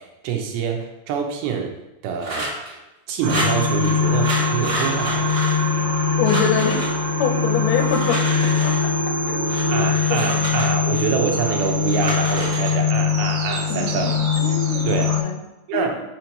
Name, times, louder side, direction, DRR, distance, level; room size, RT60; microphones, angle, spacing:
voice 1, 0.2-1.7 2.0-2.5 3.1-5.3 9.7-14.2 14.8-15.1 15.7-16.0, right 6 dB, 85° right, 2 dB, 2.7 m, -25 dB
sound 1, 2.2-2.7 3.3-3.9 4.2-6.0 6.2-6.9 7.7-8.9 9.4-11.1 11.5-12.7, right 1 dB, 50° right, 1.2 m, -29 dB
sound 2, 3.2-15.2, left 5 dB, 70° right, 2.3 m, -22 dB
voice 2, 6.2-6.9 7.2-8.7 9.3-10.6 13.7-15.4 15.7-16.0, left 6 dB, 80° left, 3 dB, 2.5 m, -26 dB
6.6 x 3.0 x 5.2 m, 0.96 s
omnidirectional pair, 4.4 m